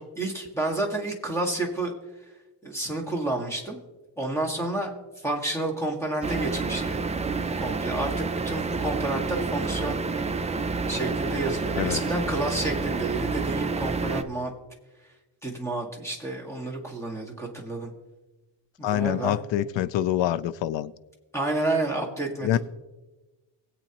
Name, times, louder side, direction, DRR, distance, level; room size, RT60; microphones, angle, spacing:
voice 1, 0.0-1.9 2.6-3.8 4.2-7.0 7.6-10.4 10.8-14.5 15.4-17.9 18.8-19.4 21.3-22.6, right 2 dB, 5° left, 1.8 m, -30 dB
sound 1, 6.2-14.2, right 4 dB, 15° right, 0.4 m, -29 dB
voice 2, 18.8-20.9 22.4-22.6, left 12 dB, 80° left, 0.6 m, -25 dB
22.0 x 8.3 x 3.0 m
wide cardioid pair, 150°, 44 cm